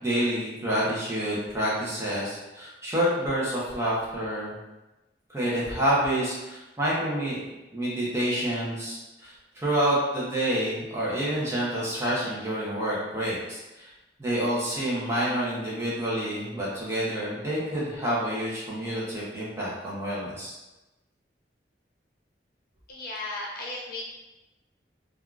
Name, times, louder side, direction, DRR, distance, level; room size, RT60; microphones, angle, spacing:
voice 1, 0.0-4.5 5.3-7.4 7.7-13.9 14.2-20.5, right 1 dB, 15° right, -7 dB, 0.7 m, -28 dB
voice 2, 22.9-24.0, left 2 dB, 55° left, -4 dB, 0.7 m, -35 dB
3.5 x 2.4 x 2.3 m, 1.0 s
head